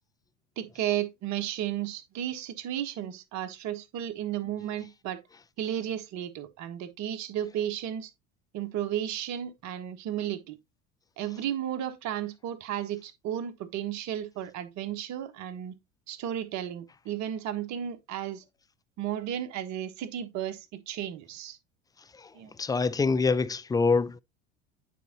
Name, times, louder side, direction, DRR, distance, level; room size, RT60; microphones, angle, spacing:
voice 1, 0.6-5.2 5.6-8.1 8.5-10.6 11.2-15.7 16.1-18.4 19.0-21.6 22.3-22.5, right 11 dB, 50° right, 1.3 m, -33 dB
voice 2, 22.6-24.2, left 4 dB, 10° left, 0.4 m, -25 dB
9.2 x 4.7 x 2.9 m
hypercardioid pair, 75°, 37 cm